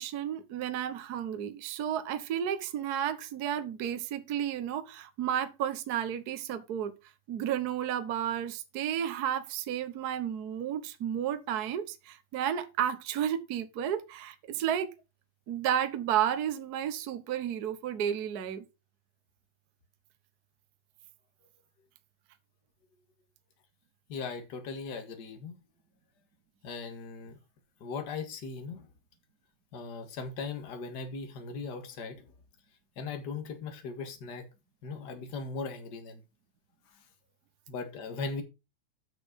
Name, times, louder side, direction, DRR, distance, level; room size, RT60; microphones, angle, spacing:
voice 1, 0.0-6.9 7.3-14.9 15.5-18.6, right 10 dB, 80° right, 0.8 m, -32 dB
voice 2, 24.1-25.6 26.6-27.4 27.8-28.9 29.7-32.3 33.0-34.5 34.8-36.2 37.7-38.4, left 4 dB, 40° left, 2.0 m, -38 dB
9.0 x 6.4 x 5.2 m
omnidirectional pair, 3.4 m